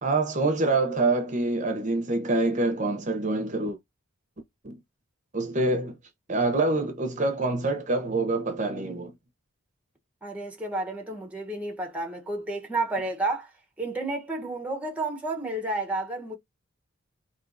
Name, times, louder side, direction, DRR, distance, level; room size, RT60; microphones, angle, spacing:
voice 1, 0.0-3.8 4.6-4.8 5.3-6.0 6.3-9.1, right 2 dB, 35° right, 0.9 m, -26 dB
voice 2, 10.2-13.5 13.8-16.4, right 2 dB, 5° right, 1.1 m, -31 dB
4.5 x 3.0 x 2.6 m
head